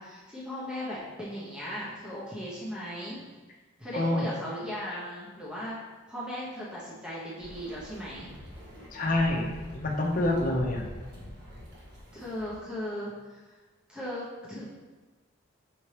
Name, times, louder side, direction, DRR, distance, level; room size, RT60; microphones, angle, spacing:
voice 1, 0.0-3.3 3.8-5.7 6.1-8.3 11.2-11.4 12.1-13.5 13.9-14.7, equal, 5° right, -7 dB, 0.9 m, -37 dB
voice 2, 3.9-4.3 8.9-10.8, left 1 dB, 40° left, 0 dB, 0.8 m, -27 dB
sound 1, 7.4-12.6, left 1 dB, 50° right, 1.4 m, -45 dB
6.5 x 4.4 x 3.3 m, 1.3 s
head